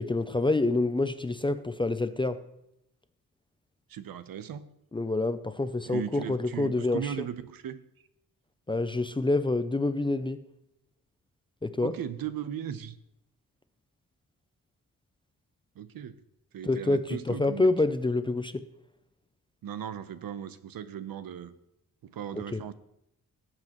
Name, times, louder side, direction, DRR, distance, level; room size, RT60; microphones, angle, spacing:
voice 1, 0.0-2.4 4.9-7.0 8.7-10.4 11.6-11.9 16.6-18.7 22.4-22.6, left 2 dB, 15° left, 11 dB, 0.3 m, -27 dB
voice 2, 3.9-4.6 5.8-7.8 11.8-13.0 15.8-16.2 16.5-17.7 19.6-21.5 22.0-22.7, right 9 dB, 80° right, 13 dB, 0.7 m, -37 dB
18.0 x 7.6 x 3.0 m, 0.80 s
wide cardioid pair, 155°, 34 cm